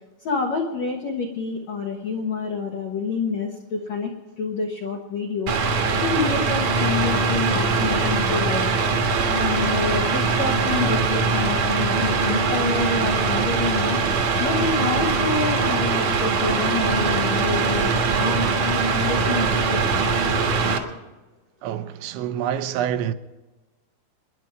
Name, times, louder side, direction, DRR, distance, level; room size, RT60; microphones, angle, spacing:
voice 1, 0.2-4.1 4.4-8.7 9.3-14.0 14.4-20.1, left 4 dB, 80° left, 1.5 m, -28 dB
Mechanical fan, 5.5-20.8, right 4 dB, 60° right, 1.9 m, -22 dB
voice 2, 21.6-23.1, right 10 dB, 80° right, 3.1 m, -27 dB
27.0 x 11.0 x 4.7 m
omnidirectional pair, 5.4 m